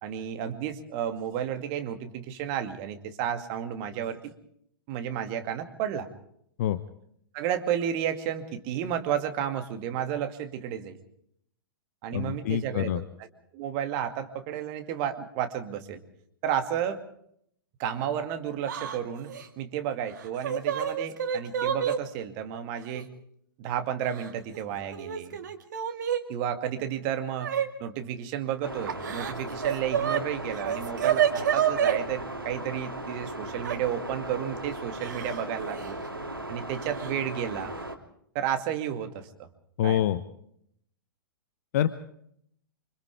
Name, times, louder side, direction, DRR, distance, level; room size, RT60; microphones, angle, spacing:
voice 1, 0.0-4.3 4.9-6.1 7.3-11.0 12.0-13.3 13.5-16.0 16.4-17.0 17.8-19.3 19.6-23.1 23.6-25.4 26.3-27.5 27.8-36.0 36.5-37.7 38.3-39.5 39.8-40.0, right 9 dB, 35° right, 7 dB, 2.3 m, -32 dB
voice 2, 12.1-13.0 39.8-40.2 41.7-41.9, left 11 dB, 45° left, 13 dB, 0.9 m, -26 dB
Yell / Crying sobbing, 18.7-19.0 19.3-19.5 20.2-22.0 22.9-23.0 24.1-24.6 24.9-26.2 27.4-27.7 28.9-30.2 30.5-32.0 33.6-33.8 35.0-35.4 35.7-35.9 37.0-37.1 37.5-37.8, right 9 dB, 55° right, 2.3 m, -28 dB
sound 1, 28.6-38.0, right 1 dB, 85° right, 2.8 m, -37 dB
29.0 x 25.5 x 3.5 m, 0.69 s
figure-of-eight pair, 105°, 12 cm